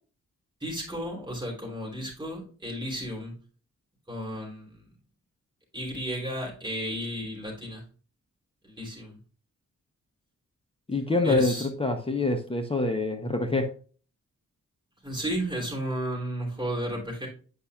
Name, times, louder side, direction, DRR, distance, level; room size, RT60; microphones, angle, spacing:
voice 1, 0.6-3.3 4.1-4.8 5.7-7.8 8.6-9.2 11.2-11.7 15.0-17.3, right 1 dB, 15° right, -3 dB, 3.1 m, -33 dB
voice 2, 10.9-13.7, left 2 dB, 20° left, 5 dB, 0.8 m, -26 dB
8.6 x 5.4 x 2.3 m, 0.39 s
wide cardioid pair, 140°, 30 cm